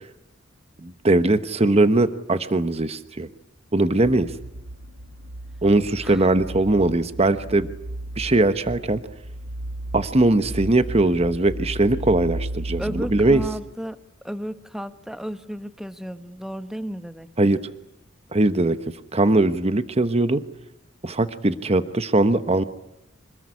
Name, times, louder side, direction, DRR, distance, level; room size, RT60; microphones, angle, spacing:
voice 1, 0.8-3.3 3.7-4.3 5.6-7.7 8.2-9.0 9.9-13.4 17.4-17.6 18.3-18.8 19.1-20.4 21.0-22.6, right 2 dB, 30° right, 11 dB, 1.0 m, -20 dB
sound 1, 4.0-13.5, right 1 dB, 75° right, 1.6 m, -35 dB
voice 2, 12.8-14.0 14.2-17.3, equal, ahead, 11 dB, 1.2 m, -33 dB
26.5 x 20.0 x 9.8 m, 0.85 s
head